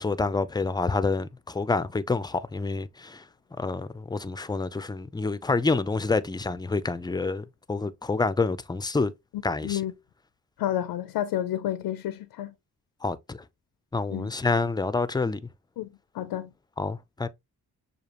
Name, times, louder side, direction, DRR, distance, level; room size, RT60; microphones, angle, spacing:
voice 1, 0.0-3.2 3.6-9.1 9.4-9.8 13.0-13.4 13.9-15.4 16.8-17.3, left 3 dB, 10° left, 0.4 m, -28 dB
voice 2, 10.6-12.5 14.1-14.3 15.8-15.9 16.1-16.5, left 12 dB, 80° left, 0.6 m, -30 dB
6.6 x 2.4 x 2.9 m
cardioid pair, 60°, 37 cm